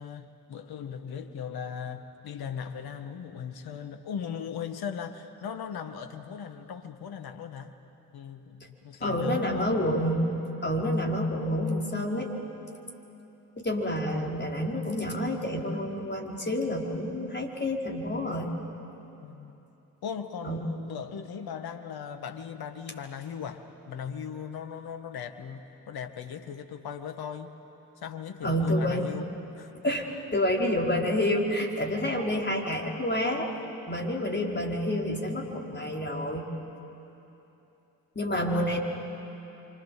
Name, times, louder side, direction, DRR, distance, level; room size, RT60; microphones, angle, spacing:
voice 1, 0.0-7.7 8.1-9.8 19.2-19.6 20.0-27.6 28.0-29.7, left 7 dB, 55° left, 8 dB, 1.9 m, -38 dB
voice 2, 9.0-10.3 10.6-12.3 13.6-18.5 20.4-20.6 28.4-29.1 29.8-30.1 30.3-33.5 33.9-36.4 38.1-38.8, left 1 dB, 25° left, -1 dB, 4.9 m, -28 dB
29.0 x 25.0 x 7.8 m, 3.0 s
figure-of-eight pair, 45°, 45 cm